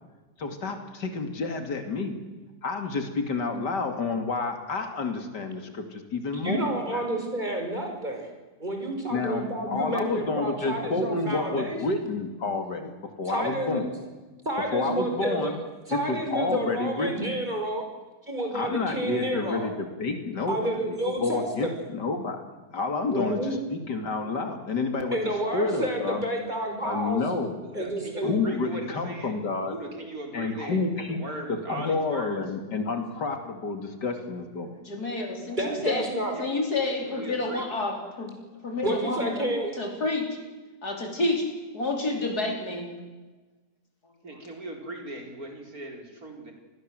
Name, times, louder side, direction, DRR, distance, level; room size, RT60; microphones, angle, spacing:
voice 1, 0.4-2.2 2.6-7.0 9.1-12.9 13.2-13.9 14.7-15.6 15.9-17.1 18.5-20.6 20.9-22.4 22.7-25.2 25.5-26.2 26.8-27.5 28.2-29.7 30.3-31.2 31.5-34.7, left 3 dB, 80° left, 6 dB, 3.2 m, -29 dB
voice 2, 6.4-8.3 8.6-11.8 13.3-13.9 14.5-15.6 15.9-17.8 18.3-19.7 20.5-21.7 23.1-23.6 25.1-27.2 27.7-28.3 35.6-36.3 38.8-39.8, right 1 dB, 25° right, 2 dB, 5.7 m, -30 dB
voice 3, 27.0-29.3 29.7-30.8 31.1-32.4 36.3-36.4 37.0-37.7 44.2-46.5, right 1 dB, 55° right, 3 dB, 4.9 m, -38 dB
voice 4, 34.8-36.0 36.4-38.3 38.6-39.5 39.8-40.3 40.8-41.4 41.7-42.9, left 2 dB, 65° left, 3 dB, 5.1 m, -29 dB
28.5 x 20.5 x 7.9 m, 1.2 s
omnidirectional pair, 1.8 m